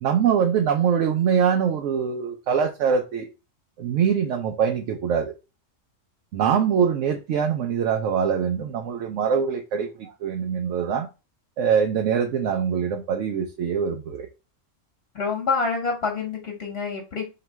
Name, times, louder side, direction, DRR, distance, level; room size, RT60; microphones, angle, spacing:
voice 1, 0.0-3.3 3.8-5.4 6.3-11.1 11.6-14.3, right 7 dB, 75° right, 0.9 m, -23 dB
voice 2, 15.1-17.2, left 4 dB, 50° left, 1.2 m, -27 dB
3.1 x 2.9 x 4.5 m
omnidirectional pair, 1.3 m